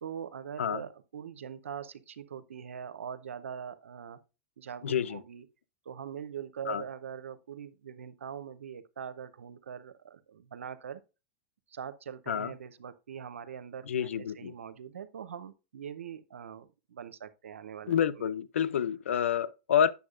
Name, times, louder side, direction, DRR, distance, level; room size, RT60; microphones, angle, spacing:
voice 1, 0.0-4.2 4.6-5.5 5.8-11.0 11.7-18.2, right 8 dB, 90° right, 0.8 m, -42 dB
voice 2, 4.8-5.2 6.7-6.8 12.3-12.5 13.9-14.5 17.9-19.9, left 8 dB, 85° left, 0.6 m, -28 dB
9.4 x 7.0 x 2.4 m
hypercardioid pair, 110°, 7 cm